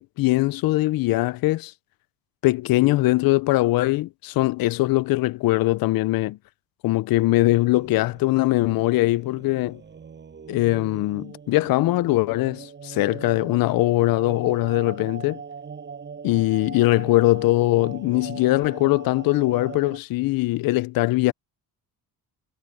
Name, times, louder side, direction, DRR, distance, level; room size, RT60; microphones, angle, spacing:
voice 1, 0.0-1.7 2.4-6.4 6.8-9.8 10.5-15.4 16.2-21.3, left 18 dB, 75° left, 0.5 m, -21 dB
sound 1, 7.2-20.0, right 6 dB, 30° right, 5.9 m, -41 dB
cardioid pair, 175°, 36 cm